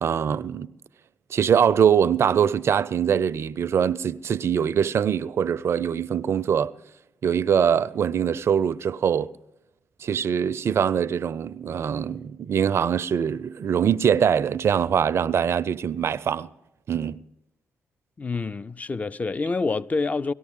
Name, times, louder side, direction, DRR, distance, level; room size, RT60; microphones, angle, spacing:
voice 1, 0.0-0.7 1.3-6.7 7.2-9.3 10.0-16.5 16.9-17.2, right 8 dB, 55° right, 0.4 m, -23 dB
voice 2, 18.2-20.3, left 3 dB, 30° left, 0.4 m, -27 dB
18.0 x 13.0 x 3.7 m
hypercardioid pair, 45°, 5 cm